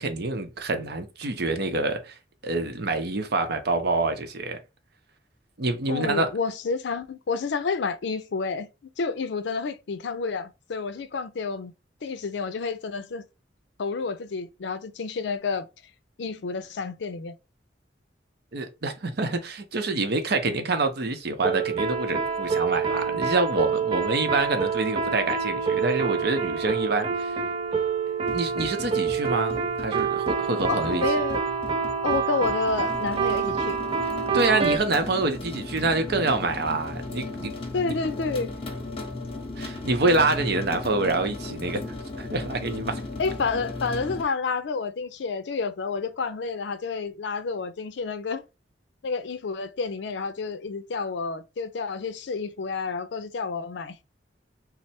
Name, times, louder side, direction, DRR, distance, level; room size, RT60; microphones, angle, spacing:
voice 1, 0.0-2.1 2.4-4.6 5.6-6.3 18.5-27.4 28.3-31.0 34.3-37.5 37.8-37.9 39.6-43.0, right 3 dB, 60° right, 0.7 m, -26 dB
voice 2, 5.9-8.7 9.0-11.7 12.0-13.2 13.8-15.7 16.2-17.3 30.7-31.4 32.0-33.8 37.7-38.5 43.2-48.4 49.0-54.0, left 4 dB, 70° left, 0.5 m, -29 dB
sound 1, 21.4-34.8, right 6 dB, 30° right, 0.4 m, -27 dB
sound 2, 28.2-44.2, left 2 dB, 35° left, 0.8 m, -36 dB
3.2 x 2.0 x 4.1 m
head